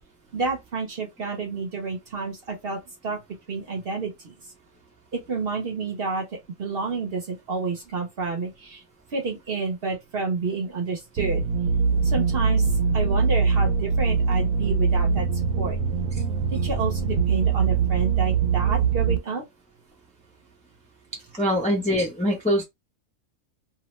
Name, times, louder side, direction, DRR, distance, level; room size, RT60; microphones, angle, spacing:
voice 1, 0.3-3.2 3.5-4.3 5.1-8.8 9.1-11.4 12.0-12.7 12.9-15.3 15.6-15.8 16.5-19.4, right 4 dB, 55° right, 0.8 m, -29 dB
sound 1, 11.2-19.2, right 5 dB, 90° right, 1.0 m, -22 dB
voice 2, 21.4-22.6, equal, 10° left, 0.5 m, -23 dB
2.7 x 2.0 x 3.0 m
omnidirectional pair, 1.4 m